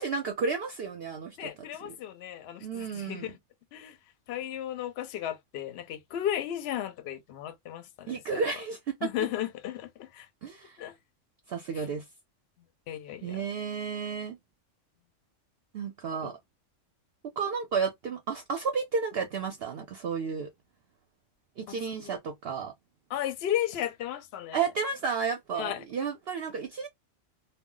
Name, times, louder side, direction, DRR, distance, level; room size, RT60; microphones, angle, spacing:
voice 1, 0.0-1.5 1.8-1.9 2.6-3.3 8.1-8.9 10.4-10.8 11.5-12.0 13.2-14.4 15.7-16.4 17.4-20.5 21.6-22.7 24.5-26.9, right 5 dB, 60° right, 0.7 m, -32 dB
voice 2, 1.4-3.4 3.7-4.0 4.3-8.4 9.0-10.3 10.8-10.9 11.8-11.9 12.9-13.4 21.7-22.1 23.1-24.6 25.5-25.8, left 11 dB, 65° left, 0.8 m, -34 dB
2.2 x 2.1 x 3.7 m
omnidirectional pair, 1.3 m